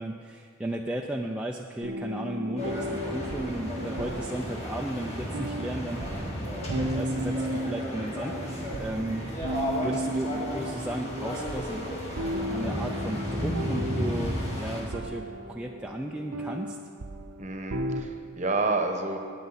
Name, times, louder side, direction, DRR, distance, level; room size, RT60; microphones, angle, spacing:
voice 1, 0.0-9.2 9.8-11.9 12.3-16.8, right 1 dB, 5° right, 0 dB, 0.3 m, -35 dB
sound 1, 1.8-18.0, equal, 70° right, 0.7 m, -35 dB
sound 2, 2.6-14.8, equal, 30° left, 1.9 m, -33 dB
voice 2, 17.4-19.2, right 3 dB, 30° right, 4 dB, 1.0 m, -29 dB
16.5 x 9.1 x 4.1 m, 2.2 s
head